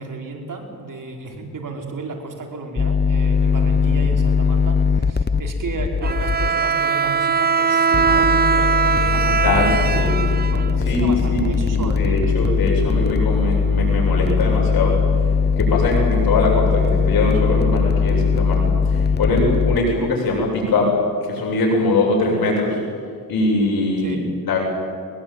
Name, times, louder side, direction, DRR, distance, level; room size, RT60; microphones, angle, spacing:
voice 1, 0.0-12.6 24.0-24.2, right 3 dB, 60° right, 2 dB, 5.1 m, -33 dB
sound 1, 2.8-6.5 7.9-19.8, left 5 dB, 30° left, 1.0 m, -20 dB
Bowed string instrument, 6.0-11.1, right 6 dB, 25° right, 0.5 m, -20 dB
voice 2, 9.1-10.3 10.8-14.9 15.6-18.6 18.9-20.9 21.2-22.8 23.3-24.6, left 2 dB, 85° left, -1 dB, 8.0 m, -21 dB
22.0 x 22.0 x 9.2 m, 2.3 s
cardioid pair, 70°, 35 cm